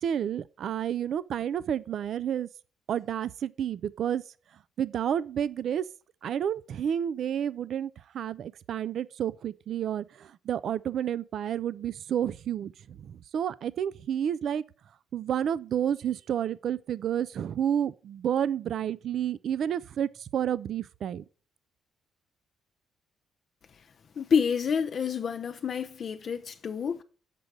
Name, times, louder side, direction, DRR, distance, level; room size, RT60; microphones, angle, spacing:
voice 1, 0.0-2.5 2.9-4.2 4.8-5.9 6.2-14.6 15.1-21.2, right 9 dB, 65° right, 0.3 m, -30 dB
voice 2, 24.2-27.0, left 6 dB, 55° left, 0.6 m, -28 dB
7.4 x 5.1 x 6.0 m
cardioid pair, 90°, 0 cm